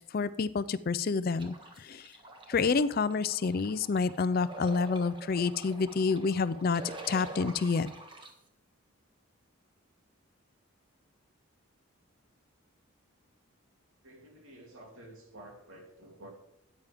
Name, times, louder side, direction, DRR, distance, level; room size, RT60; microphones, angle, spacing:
voice 1, 0.1-2.1 2.5-7.9, left 4 dB, 45° left, 15 dB, 0.4 m, -28 dB
sound 1, 1.4-8.3, right 2 dB, 25° right, 1.4 m, -46 dB
voice 2, 14.0-16.3, right 1 dB, 70° right, 0 dB, 3.1 m, -51 dB
13.5 x 9.2 x 3.6 m, 0.80 s
head